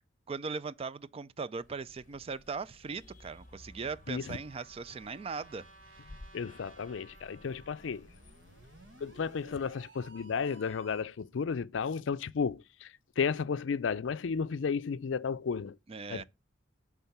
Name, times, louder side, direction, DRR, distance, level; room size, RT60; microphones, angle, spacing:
voice 1, 0.3-5.6 15.9-16.2, right 5 dB, 30° right, 0.4 m, -39 dB
sound 1, 1.6-9.8, left 1 dB, 40° left, 0.9 m, -56 dB
Trumpet, 3.3-8.0, right 3 dB, 80° right, 2.5 m, -59 dB
voice 2, 4.1-4.4 6.3-8.1 9.0-12.9 13.2-15.8 16.1-16.2, left 6 dB, 70° left, 0.4 m, -33 dB
sound 2, 7.3-11.2, right 3 dB, 65° right, 1.1 m, -57 dB
11.0 x 3.8 x 5.9 m
head